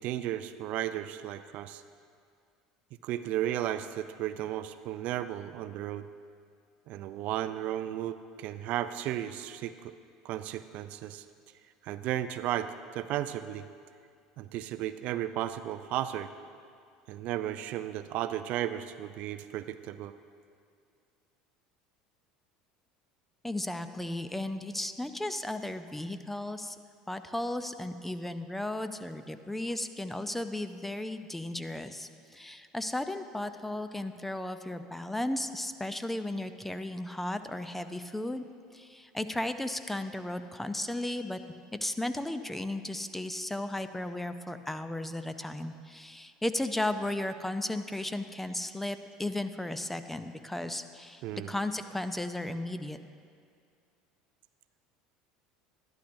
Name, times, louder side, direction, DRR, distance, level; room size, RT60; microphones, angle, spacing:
voice 1, 0.0-1.8 3.0-6.1 6.9-9.9 10.2-11.2 11.8-13.7 14.4-16.3 17.1-20.1 51.2-51.5, right 12 dB, 60° right, 12 dB, 0.3 m, -34 dB
voice 2, 23.4-26.8 27.1-38.4 38.7-41.4 41.8-51.2 51.5-53.0, left 1 dB, 5° left, 10 dB, 0.5 m, -35 dB
11.5 x 11.5 x 2.6 m, 2.3 s
hypercardioid pair, 85°, 3 cm